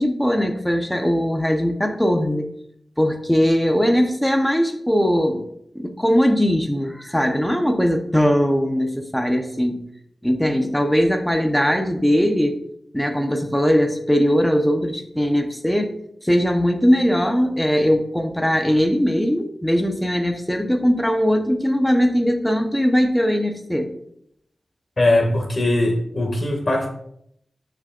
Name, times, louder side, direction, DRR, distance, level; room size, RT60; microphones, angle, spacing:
voice 1, 0.0-2.5 3.0-5.4 5.7-9.8 10.2-12.6 12.9-15.9 16.2-23.9, equal, 5° left, 4 dB, 1.0 m, -20 dB
voice 2, 25.0-26.9, left 1 dB, 40° left, 3 dB, 2.1 m, -20 dB
20.0 x 6.7 x 2.6 m, 0.72 s
wide cardioid pair, 115°, 0 cm